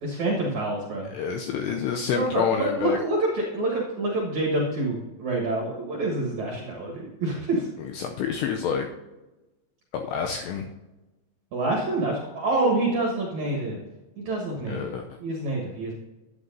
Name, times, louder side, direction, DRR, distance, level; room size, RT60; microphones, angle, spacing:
voice 1, 0.0-1.1 2.1-7.7 11.5-13.8 14.2-14.9 15.2-15.9, right 2 dB, 65° right, -1 dB, 1.9 m, -27 dB
voice 2, 1.1-3.0 7.9-8.9 9.9-10.7 14.7-15.1, left 7 dB, 85° left, 4 dB, 2.4 m, -27 dB
11.5 x 9.2 x 2.7 m, 1.1 s
omnidirectional pair, 5.5 m